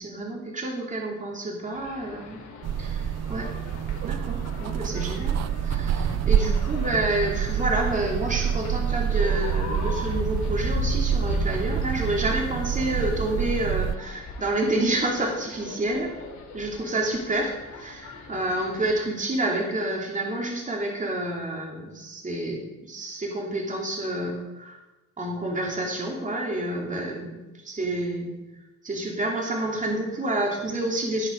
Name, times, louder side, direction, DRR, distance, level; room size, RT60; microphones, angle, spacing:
voice 1, 0.0-2.4 2.8-3.5 4.0-16.1 16.5-24.8 25.2-28.3 28.8-31.3, right 1 dB, 25° right, -1 dB, 2.7 m, -29 dB
sound 1, 1.7-18.9, left 3 dB, 65° left, 4.0 m, -37 dB
sound 2, 2.6-14.0, right 9 dB, 60° right, 0.5 m, -27 dB
17.5 x 5.8 x 5.2 m, 1.1 s
cardioid pair, 90°, 30 cm